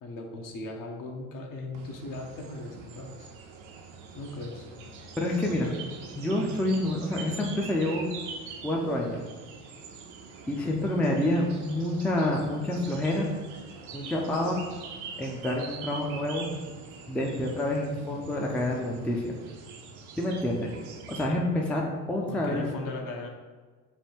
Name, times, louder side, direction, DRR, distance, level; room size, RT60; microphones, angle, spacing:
voice 1, 0.0-3.3 4.2-4.7 22.3-23.3, left 2 dB, 50° left, 2 dB, 0.8 m, -38 dB
sound 1, 1.7-21.3, right 4 dB, 75° right, 0.7 m, -44 dB
voice 2, 5.2-5.7 6.2-8.1 8.6-9.2 10.5-13.3 13.9-14.6 15.2-16.5 17.1-19.4 20.2-20.7 21.1-22.7, left 1 dB, 5° left, -1 dB, 0.4 m, -28 dB
3.4 x 2.3 x 4.3 m, 1.4 s
hypercardioid pair, 70°, 42 cm